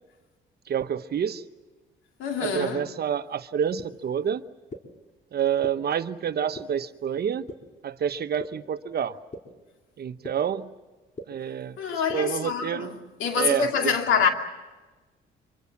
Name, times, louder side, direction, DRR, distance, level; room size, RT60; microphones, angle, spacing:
voice 1, 0.7-1.4 2.4-4.4 5.3-7.4 7.8-9.2 10.0-10.7 11.3-12.9 13.3-13.9, right 8 dB, 55° right, 1.0 m, -28 dB
voice 2, 2.2-2.9 11.8-12.9 13.2-14.3, left 6 dB, 85° left, 2.5 m, -25 dB
sound 1, 3.8-3.9 4.7-4.8 5.6-5.7 6.6-6.7 7.5-7.6 8.4-8.5 9.3-9.4 10.2-10.3 11.2-11.3 12.1-12.2, left 2 dB, 35° left, 3.5 m, -36 dB
25.0 x 23.5 x 7.2 m
cardioid pair, 90°, 20 cm